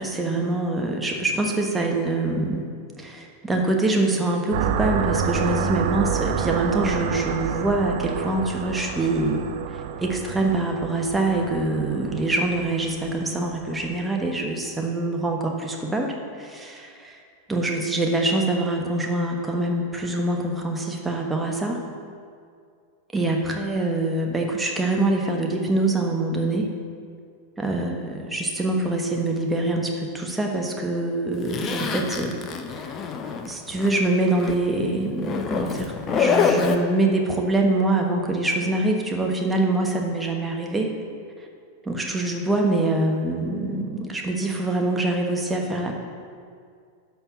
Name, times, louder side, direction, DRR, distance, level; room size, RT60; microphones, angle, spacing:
voice 1, 0.0-2.7 3.0-9.4 9.7-17.2 17.5-21.8 23.1-26.7 27.6-32.4 33.4-41.0 41.8-45.9, right 2 dB, 10° right, 1 dB, 1.3 m, -24 dB
sound 1, 4.5-14.1, right 7 dB, 50° right, 0.5 m, -29 dB
Zipper (clothing), 31.5-34.0 34.3-34.6 35.2-36.8, left 6 dB, 30° left, 0.7 m, -25 dB
11.0 x 4.6 x 6.9 m, 2.2 s
figure-of-eight pair, 90°, 0 cm